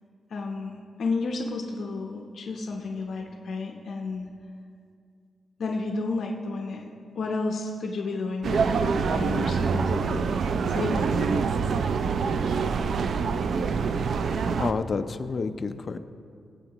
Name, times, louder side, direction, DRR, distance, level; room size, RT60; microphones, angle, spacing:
voice 1, 0.3-0.7 1.0-4.3 5.6-6.9 7.2-8.6 8.9-10.4 10.7-11.4, left 3 dB, 60° left, 1 dB, 0.8 m, -31 dB
sound 1, 8.4-14.7, right 5 dB, 60° right, 0.4 m, -25 dB
voice 2, 14.6-16.0, left 4 dB, 35° left, 9 dB, 0.5 m, -29 dB
22.0 x 8.1 x 3.0 m, 2.3 s
wide cardioid pair, 155°, 0 cm